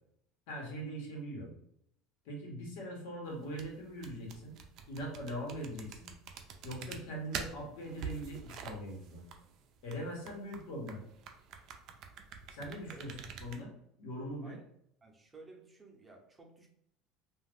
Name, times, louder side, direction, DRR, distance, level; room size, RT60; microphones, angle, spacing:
voice 1, 0.5-1.5 2.2-4.5 4.9-6.1 6.6-9.2 9.8-11.0 12.5-13.1 13.4-13.7 14.0-14.6, equal, 75° left, -1 dB, 1.1 m, -41 dB
sound 1, 3.3-13.6, right 6 dB, 55° right, 0.4 m, -46 dB
voice 2, 15.0-16.7, right 3 dB, 20° right, 1 dB, 0.7 m, -54 dB
2.4 x 2.4 x 3.5 m, 0.72 s
supercardioid pair, 110°, 0 cm